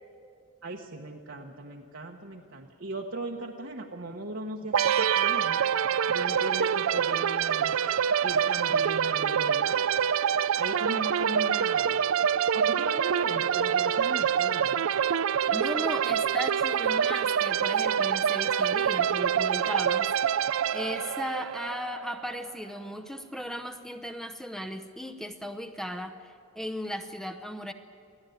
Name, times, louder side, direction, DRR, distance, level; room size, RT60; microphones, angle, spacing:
voice 1, 0.6-5.6 6.1-7.9 8.2-9.8 10.5-12.1 12.3-14.9, right 2 dB, 60° right, 0 dB, 1.1 m, -38 dB
sound 1, 4.7-22.3, right 8 dB, 80° right, 0.4 m, -26 dB
voice 2, 15.5-27.7, equal, ahead, 7 dB, 0.7 m, -36 dB
23.5 x 16.0 x 9.2 m, 2.4 s
head